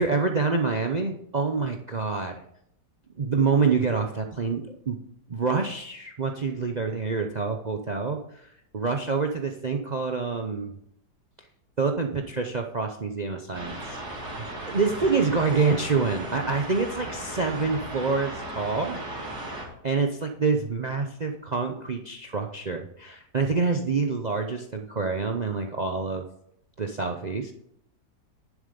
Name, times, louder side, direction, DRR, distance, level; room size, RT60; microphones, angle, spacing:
voice 1, 0.0-2.3 3.1-5.0 5.3-8.5 8.7-10.7 11.8-19.0 19.8-26.2 26.8-27.5, right 4 dB, 45° right, 5 dB, 0.5 m, -27 dB
sound 1, 13.5-19.7, right 1 dB, 70° right, 3.1 m, -36 dB
11.0 x 7.4 x 5.2 m, 0.73 s
omnidirectional pair, 1.8 m